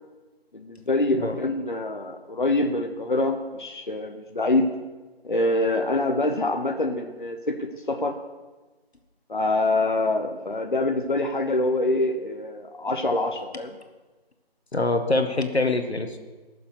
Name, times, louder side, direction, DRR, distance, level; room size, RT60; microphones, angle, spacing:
voice 1, 0.5-4.7 5.2-8.2 9.3-13.8, left 2 dB, 50° left, 5 dB, 0.9 m, -25 dB
voice 2, 14.7-16.2, left 2 dB, 90° left, 6 dB, 1.7 m, -24 dB
16.5 x 7.1 x 6.4 m, 1.2 s
figure-of-eight pair, 175°, 31 cm